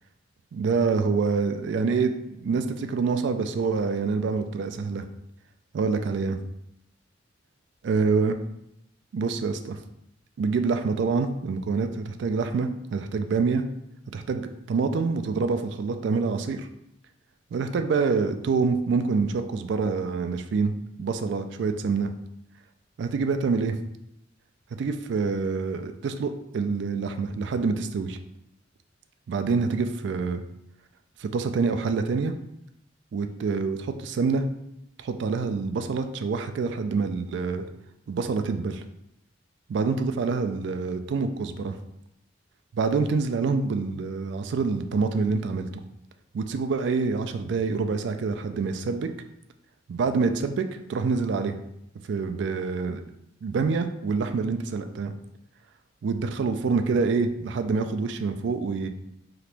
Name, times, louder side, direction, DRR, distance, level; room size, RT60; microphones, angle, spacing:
voice 1, 0.5-5.0 5.7-6.4 7.8-8.3 9.1-9.8 10.4-13.6 14.1-16.7 17.5-20.7 21.0-22.1 23.0-23.8 24.8-28.2 29.3-30.4 31.2-32.3 33.1-34.4 35.0-37.6 38.1-38.8 39.7-41.8 42.7-45.8 46.3-49.1 49.9-50.6 50.9-51.6 52.1-53.0 53.4-55.1 56.0-58.9, right 4 dB, 65° right, 7 dB, 0.3 m, -26 dB
2.9 x 2.5 x 3.3 m, 0.80 s
head